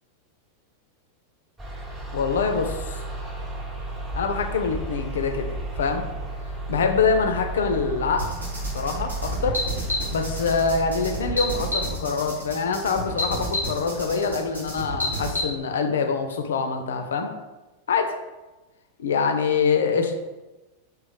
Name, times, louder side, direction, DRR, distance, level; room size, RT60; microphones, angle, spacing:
sound 1, 1.6-12.0, right 2 dB, 20° right, 0.9 m, -33 dB
voice 1, 2.1-3.0 4.1-6.0 6.7-8.3 8.7-9.6 10.1-17.3 17.9-18.2 19.0-20.2, left 5 dB, 65° left, 6 dB, 0.4 m, -25 dB
sound 2, 8.2-15.5, equal, 80° right, 1.0 m, -30 dB
3.0 x 3.0 x 3.7 m, 1.1 s
figure-of-eight pair, 90°, 0 cm